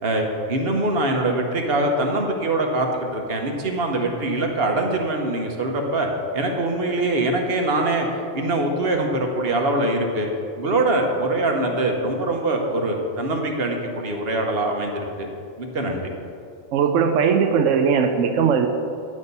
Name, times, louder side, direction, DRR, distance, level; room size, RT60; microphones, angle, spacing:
voice 1, 0.0-6.1 6.3-8.1 8.3-10.3 10.6-15.3 15.6-16.0, right 2 dB, 50° right, 2 dB, 1.2 m, -23 dB
voice 2, 16.7-18.7, right 6 dB, 70° right, 6 dB, 0.9 m, -19 dB
9.7 x 6.4 x 5.4 m, 2.4 s
omnidirectional pair, 1.4 m